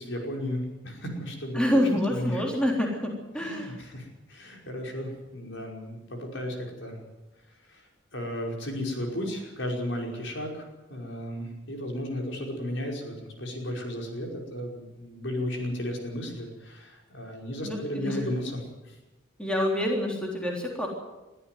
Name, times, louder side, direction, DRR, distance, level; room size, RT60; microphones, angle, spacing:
voice 1, 0.0-1.8 2.1-2.4 3.4-7.0 7.7-7.9 8.1-18.6 18.9-19.0, left 1 dB, 70° left, 1 dB, 5.4 m, -34 dB
voice 2, 1.5-3.8 17.6-18.3 19.4-20.9, left 1 dB, 5° left, -1 dB, 3.6 m, -27 dB
22.5 x 13.5 x 9.4 m, 1.1 s
head